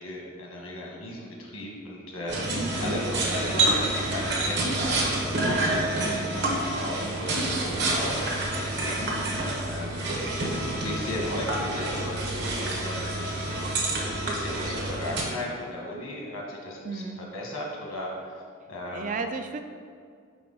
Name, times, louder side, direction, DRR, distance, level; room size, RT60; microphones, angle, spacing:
voice 1, 0.0-18.4 18.7-19.2, left 1 dB, 90° left, -2 dB, 1.4 m, -36 dB
sound 1, 2.3-15.2, right 2 dB, 55° right, 1.0 m, -28 dB
voice 2, 16.8-17.2 18.9-19.6, right 4 dB, 40° right, 7 dB, 0.3 m, -33 dB
4.8 x 3.9 x 5.3 m, 2.2 s
head